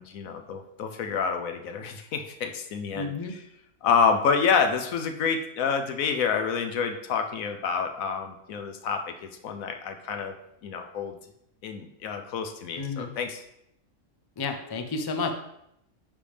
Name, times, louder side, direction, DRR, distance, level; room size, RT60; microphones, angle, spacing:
voice 1, 0.0-3.4 3.8-10.3 10.6-11.2 11.6-13.4, left 6 dB, 85° left, 6 dB, 1.2 m, -28 dB
voice 2, 2.9-3.3 12.8-13.1 14.4-15.3, left 4 dB, 35° left, 5 dB, 0.3 m, -31 dB
10.0 x 3.5 x 3.4 m, 0.77 s
omnidirectional pair, 1.4 m